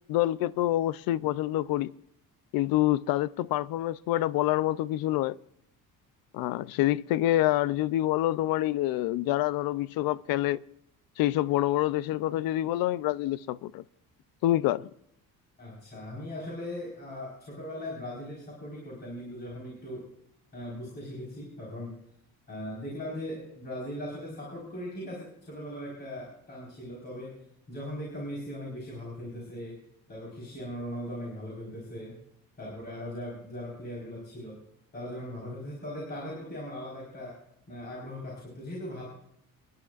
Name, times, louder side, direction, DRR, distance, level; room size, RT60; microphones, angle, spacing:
voice 1, 0.1-1.9 2.5-5.4 6.3-10.6 11.2-13.8 14.4-14.9, left 14 dB, 80° left, 0.6 m, -27 dB
voice 2, 15.6-20.1 20.5-22.0 22.5-27.4 27.7-29.8 30.1-32.2 32.6-34.6 34.9-37.4 37.7-39.0, left 1 dB, 30° left, 4.6 m, -39 dB
27.5 x 10.5 x 2.5 m
cardioid pair, 165°, 35 cm